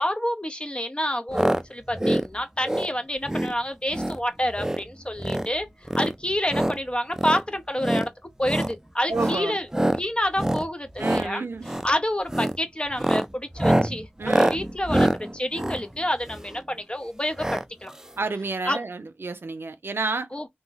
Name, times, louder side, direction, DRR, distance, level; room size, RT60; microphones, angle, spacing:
voice 1, 0.0-8.1 8.4-9.7 9.9-11.5 11.8-17.9 18.6-18.8 20.3-20.5, left 1 dB, 25° left, 0.6 m, -28 dB
sound 1, 1.3-1.6 1.9-2.3 2.6-2.9 3.3-3.5 3.9-4.2 4.5-4.8 5.1-5.5 5.9-6.8 7.1-7.4 7.8-8.1 8.4-8.7 9.1-9.4 9.7-10.0 10.3-10.7 10.9-11.3 11.6-11.9 12.3-12.6 12.9-16.6 17.4-17.6 17.9-18.0 18.2-18.3, right 1 dB, 15° right, 0.4 m, -25 dB
voice 2, 9.1-9.6 11.0-11.7 14.2-14.6 18.2-20.3, right 3 dB, 80° right, 0.5 m, -30 dB
2.6 x 2.0 x 3.9 m
wide cardioid pair, 40°, 4 cm